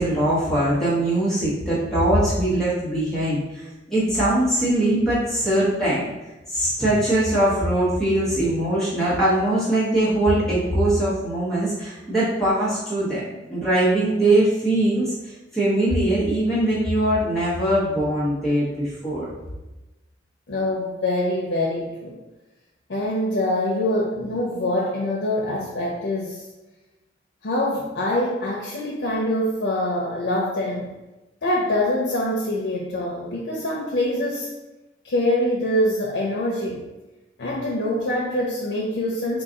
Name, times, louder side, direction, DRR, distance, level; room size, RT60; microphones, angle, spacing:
voice 1, 0.0-3.6 3.9-6.1 6.5-15.1 15.5-19.3, right 1 dB, 5° left, -10 dB, 1.0 m, -21 dB
voice 2, 20.5-22.1 22.9-26.4 27.4-30.9 31.4-34.5 35.0-36.8 37.4-39.4, left 1 dB, 90° left, -5 dB, 0.6 m, -24 dB
3.9 x 2.3 x 3.7 m, 1.0 s
head